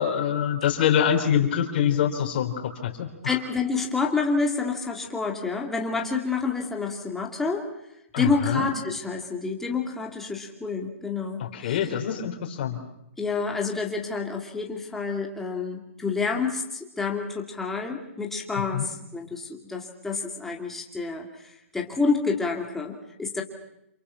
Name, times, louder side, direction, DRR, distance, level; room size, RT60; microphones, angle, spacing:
voice 1, 0.0-3.4 8.1-8.7 11.4-12.8 18.7-18.9, left 9 dB, 45° left, 1 dB, 4.1 m, -25 dB
voice 2, 3.2-7.7 8.2-11.8 13.2-23.4, left 4 dB, 5° left, 0 dB, 2.5 m, -28 dB
28.5 x 28.5 x 5.8 m, 0.81 s
hypercardioid pair, 165°, 7 cm